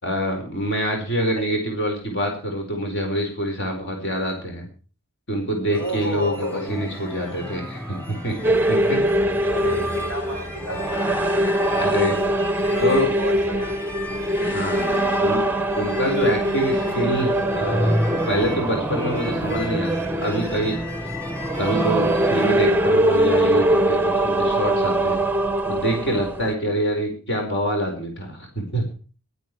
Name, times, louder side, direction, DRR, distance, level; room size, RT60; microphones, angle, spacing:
voice 1, 0.0-4.7 5.3-8.4 8.7-9.0 11.8-12.2 12.8-13.1 14.4-15.4 15.7-18.0 18.3-19.9 20.2-20.8 21.6-25.2 25.7-28.9, equal, 55° left, 2 dB, 4.7 m, -25 dB
voice 2, 5.7-6.7 9.5-11.0 12.6-12.8 13.2-13.9 27.1-27.2, left 1 dB, 75° left, 4 dB, 5.0 m, -31 dB
sound 1, 5.7-22.7, left 1 dB, 10° left, 3.9 m, -32 dB
sound 2, 8.4-26.5, right 1 dB, 10° right, 0.8 m, -22 dB
16.0 x 13.0 x 4.7 m, 0.38 s
head